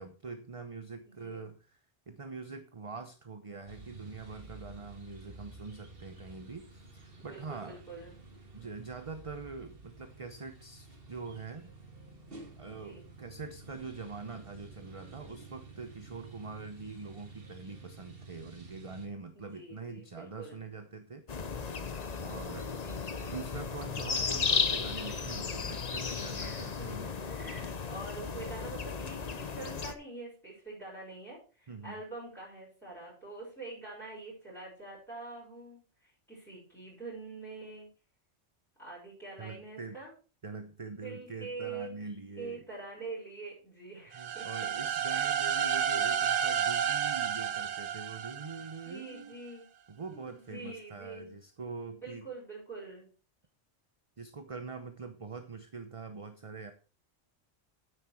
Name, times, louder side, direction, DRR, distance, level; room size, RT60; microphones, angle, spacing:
voice 1, 0.0-1.8 2.1-7.8 8.5-11.7 12.6-21.7 22.2-22.9 23.2-27.1 31.7-32.0 39.4-40.0 40.4-42.6 44.1-49.3 49.9-52.3 54.2-56.7, right 4 dB, 30° right, 8 dB, 0.8 m, -44 dB
voice 2, 1.1-1.5 7.3-8.1 12.7-13.1 19.3-20.6 22.8-23.1 26.3-37.9 38.8-40.1 41.0-41.9 42.4-44.7 45.0-45.3 48.8-49.6 50.1-51.3 52.0-53.1, right 3 dB, ahead, -7 dB, 6.2 m, -45 dB
sound 1, 3.7-19.1, right 3 dB, 50° right, 2.2 m, -51 dB
sound 2, 21.3-29.9, left 5 dB, 40° left, 0.9 m, -35 dB
sound 3, 44.1-49.0, right 8 dB, 75° right, 1.2 m, -31 dB
9.6 x 8.9 x 4.5 m, 0.35 s
omnidirectional pair, 1.2 m